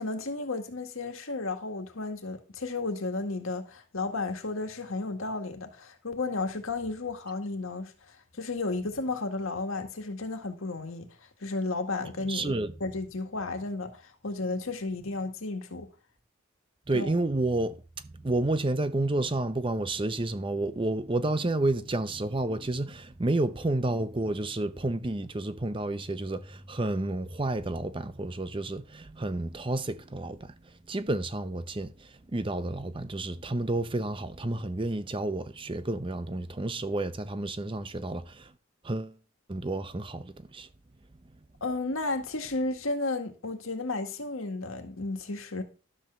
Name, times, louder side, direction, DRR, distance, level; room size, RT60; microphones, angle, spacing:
voice 1, 0.0-11.1 11.4-12.5 12.8-15.9 16.9-17.1 41.6-45.6, left 3 dB, 85° left, 1.9 m, -33 dB
voice 2, 12.3-12.7 16.9-17.8 18.2-30.5 30.9-38.5 38.8-39.2 39.5-40.7, right 2 dB, 25° right, 0.7 m, -30 dB
12.0 x 4.5 x 6.9 m
head